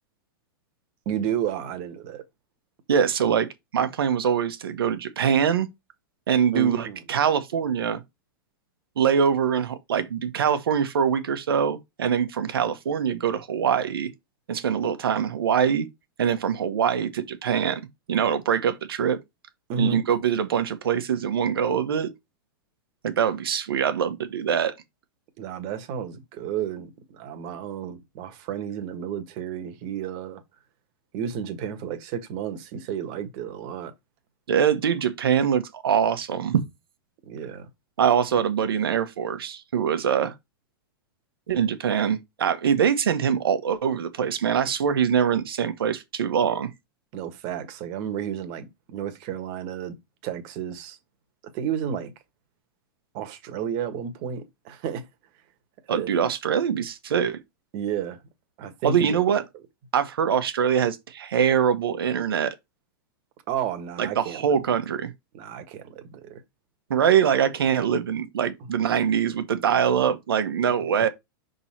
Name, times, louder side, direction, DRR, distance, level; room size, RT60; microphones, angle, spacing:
voice 1, 1.0-2.2 6.5-7.0 19.7-20.0 25.4-30.4 31.1-33.9 37.2-37.7 47.1-49.9 50.2-51.0 51.5-52.1 53.1-55.1 55.9-56.3 57.7-58.2 58.6-59.2 63.5-64.6 65.3-66.4 70.7-70.8, right 8 dB, 45° right, 1.5 m, -32 dB
voice 2, 2.9-3.5 3.7-5.7 6.3-8.0 9.0-14.1 14.5-15.9 16.2-17.8 18.1-19.2 19.8-22.1 23.0-24.7 34.5-36.6 38.0-40.3 41.5-46.7 55.9-57.4 58.8-59.4 59.9-62.5 64.0-65.1 66.9-71.1, right 8 dB, 85° right, 1.3 m, -23 dB
5.7 x 3.9 x 4.3 m
hypercardioid pair, 135°, 12 cm